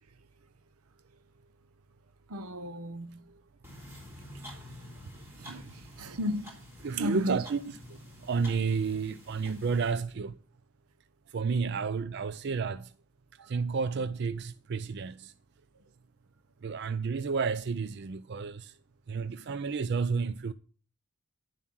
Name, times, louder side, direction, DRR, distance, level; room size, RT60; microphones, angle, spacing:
voice 1, 2.3-3.2 5.4-5.6 6.0-6.5 6.9-7.4, equal, 80° right, 0.9 m, -34 dB
sound 1, 3.6-9.9, left 1 dB, 10° right, 3.7 m, -49 dB
voice 2, 6.8-10.4 11.3-12.9 13.4-15.3 16.6-18.8 19.1-20.5, right 5 dB, 50° right, 0.4 m, -31 dB
11.0 x 7.4 x 6.0 m
head